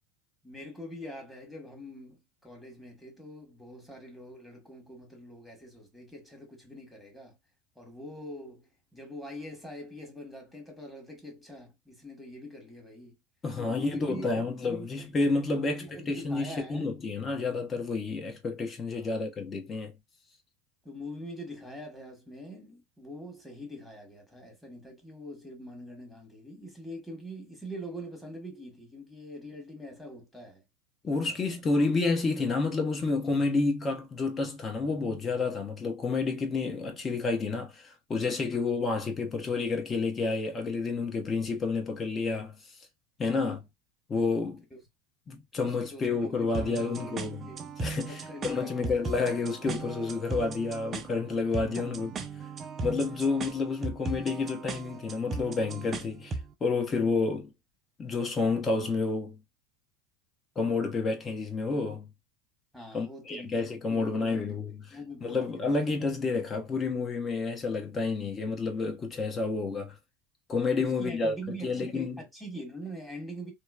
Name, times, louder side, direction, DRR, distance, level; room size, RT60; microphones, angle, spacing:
voice 1, 0.4-7.4 7.8-8.7 8.9-13.1 13.6-14.3 14.6-14.9 15.6-16.9 18.9-19.1 20.8-30.6 43.3-43.5 44.7-44.8 45.6-47.7 48.1-49.0 51.8-51.9 62.7-63.5 63.9-64.4 64.9-65.8 70.8-73.5, equal, 5° left, 1.5 m, -44 dB
voice 2, 13.4-19.9 31.0-42.6 43.2-43.6 44.1-44.6 45.3-47.5 47.8-52.1 52.8-57.5 58.0-59.4 60.6-62.1 62.9-69.9 70.5-71.3 71.6-72.2, left 4 dB, 30° left, 1.0 m, -30 dB
sound 1, 46.5-56.5, right 4 dB, 30° right, 0.5 m, -38 dB
2.9 x 2.1 x 2.3 m
hypercardioid pair, 90°, 0 cm